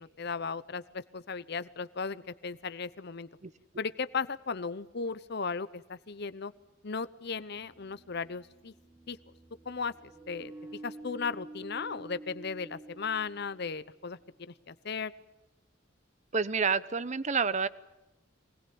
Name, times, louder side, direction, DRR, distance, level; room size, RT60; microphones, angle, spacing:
voice 1, 0.0-3.3 3.8-6.5 6.8-8.7 9.1-9.2 9.7-10.5 10.8-14.2 14.7-15.1, left 5 dB, 55° left, 15 dB, 0.8 m, -36 dB
sound 1, 7.2-14.0, right 2 dB, 10° right, 1.8 m, -49 dB
voice 2, 16.3-17.7, right 5 dB, 35° right, 16 dB, 0.8 m, -28 dB
24.0 x 20.5 x 8.6 m, 0.97 s
head